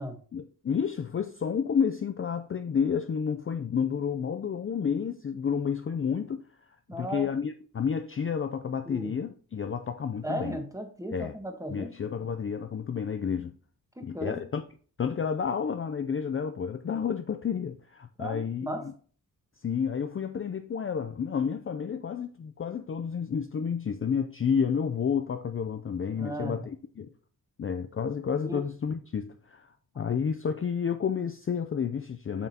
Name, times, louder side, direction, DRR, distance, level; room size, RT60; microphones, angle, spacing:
voice 1, 0.3-6.4 7.0-10.6 11.1-11.3 11.7-13.5 14.0-14.6 15.0-18.7 19.6-27.1 27.6-32.5, left 7 dB, 35° left, 0.4 m, -30 dB
voice 2, 6.9-7.3 8.8-9.2 10.2-11.9 14.0-14.4 18.2-18.9 26.2-26.7 28.4-28.6, equal, 10° right, 1.3 m, -36 dB
7.3 x 5.9 x 2.8 m
wide cardioid pair, 105°, 38 cm